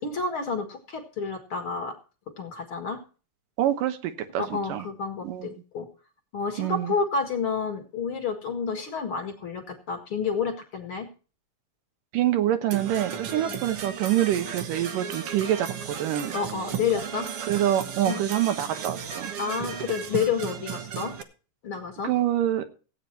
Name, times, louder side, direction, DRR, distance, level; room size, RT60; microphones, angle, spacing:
voice 1, 0.0-2.0 2.4-3.0 4.4-5.9 6.3-11.1 13.3-13.4 16.3-17.3 18.1-18.2 19.4-21.1 21.6-22.1, left 5 dB, 45° left, 5 dB, 2.2 m, -30 dB
voice 2, 3.6-4.8 5.2-5.5 6.6-7.0 12.1-16.4 17.5-19.3 22.0-22.7, right 12 dB, 85° right, 9 dB, 2.7 m, -26 dB
Percussion / Brass instrument, 12.7-21.2, right 7 dB, 60° right, 1.7 m, -35 dB
16.0 x 8.8 x 4.4 m, 0.36 s
omnidirectional pair, 3.8 m